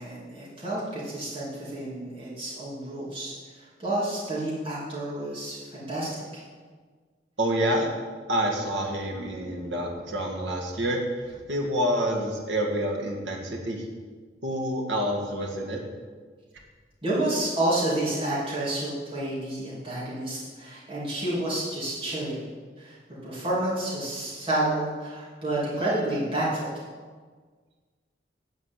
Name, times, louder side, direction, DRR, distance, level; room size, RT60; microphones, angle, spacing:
voice 1, 0.0-6.4 17.0-22.4 22.8-23.0 23.2-26.7, right 1 dB, 30° right, -9 dB, 2.9 m, -30 dB
voice 2, 7.4-7.9 8.3-13.8 14.4-15.8, equal, 90° right, 0 dB, 1.9 m, -28 dB
11.0 x 5.1 x 8.0 m, 1.5 s
head